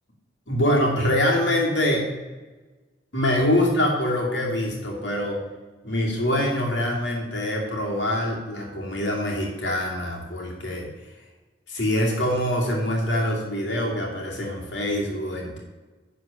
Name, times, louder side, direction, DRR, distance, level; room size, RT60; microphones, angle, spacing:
voice 1, 0.5-2.1 3.1-5.4 5.8-10.9 11.7-15.6, left 1 dB, 65° left, -1 dB, 2.6 m, -24 dB
10.5 x 4.5 x 6.9 m, 1.2 s
head